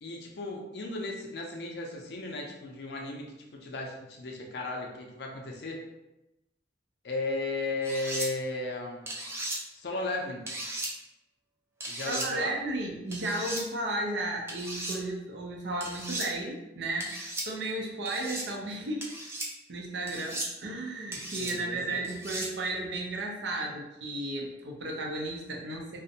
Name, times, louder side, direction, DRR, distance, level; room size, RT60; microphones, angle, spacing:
voice 1, 0.0-5.8 7.0-9.2 9.7-10.5 11.8-12.6 21.4-22.0, left 2 dB, 60° left, 0 dB, 0.4 m, -35 dB
sound 1, 7.8-8.3 9.1-9.6 10.5-10.9 11.8-12.3 13.1-13.6 14.5-15.0 15.8-16.3 17.0-17.5 18.1-18.5 19.0-19.5 20.1-20.5 21.1-21.5 22.0-22.5, right 1 dB, 15° right, 0.3 m, -36 dB
voice 2, 12.1-19.2 19.7-26.0, right 2 dB, 70° right, 0 dB, 0.5 m, -34 dB
2.5 x 2.0 x 2.7 m, 0.95 s
head